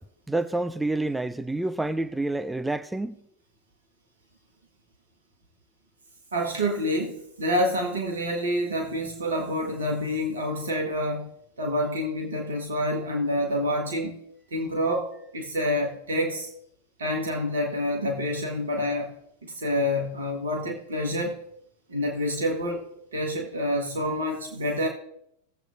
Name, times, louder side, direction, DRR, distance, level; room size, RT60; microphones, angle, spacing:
voice 1, 0.3-3.2, right 2 dB, 5° right, 0.4 m, -28 dB
voice 2, 6.3-11.3 11.6-14.2 14.5-16.5 17.0-19.1 19.4-21.4 21.9-22.8 23.1-24.9, equal, 70° right, 1.5 m, -27 dB
18.0 x 7.8 x 2.6 m
figure-of-eight pair, 90°, 0 cm